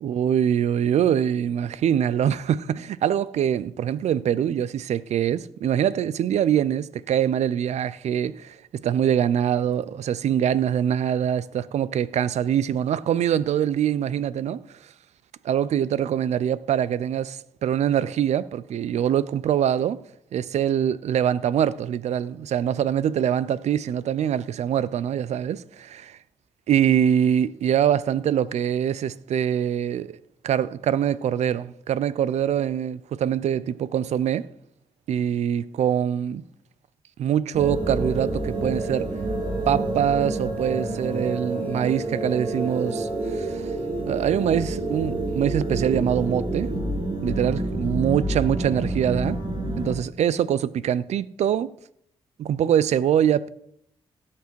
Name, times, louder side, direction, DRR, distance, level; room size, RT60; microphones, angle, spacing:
voice 1, 0.0-14.6 15.4-20.0 20.3-25.9 26.7-30.2 30.4-34.5 35.1-36.4 37.2-39.2 39.7-43.6 44.1-46.7 47.2-49.4 49.8-51.7 52.4-53.5, right 9 dB, 80° right, 0.5 m, -24 dB
sound 1, 37.5-49.9, right 2 dB, 45° right, 3.7 m, -28 dB
17.0 x 5.9 x 4.6 m
cardioid pair, 60°, 12 cm